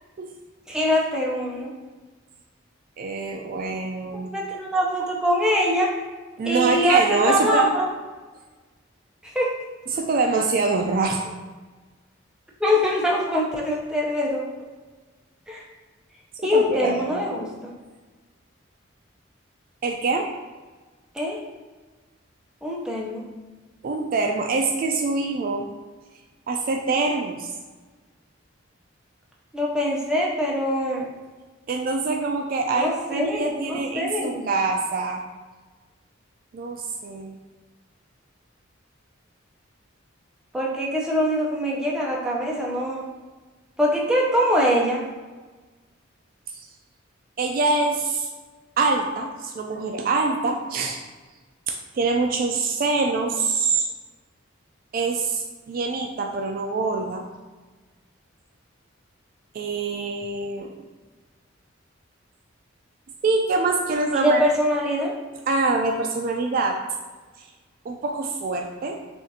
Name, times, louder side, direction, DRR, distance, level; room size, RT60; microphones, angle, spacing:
voice 1, 0.7-1.7 4.2-5.9 6.4-7.9 9.2-9.5 12.6-14.4 15.5-15.6 16.4-17.7 21.1-21.4 22.6-23.3 29.5-31.1 32.7-34.5 40.5-43.0 43.8-45.0 64.1-65.1, equal, 5° right, -4 dB, 0.6 m, -23 dB
voice 2, 3.0-4.3 6.4-7.7 9.9-11.2 16.4-17.3 19.8-20.3 23.8-25.7 26.5-27.5 31.7-35.2 36.5-37.3 47.4-48.3 48.8-51.0 51.7-53.9 54.9-57.3 59.5-60.9 63.2-64.4 65.5-66.8 67.8-69.0, right 3 dB, 45° right, 2 dB, 0.3 m, -25 dB
5.8 x 2.5 x 2.7 m, 1.3 s
head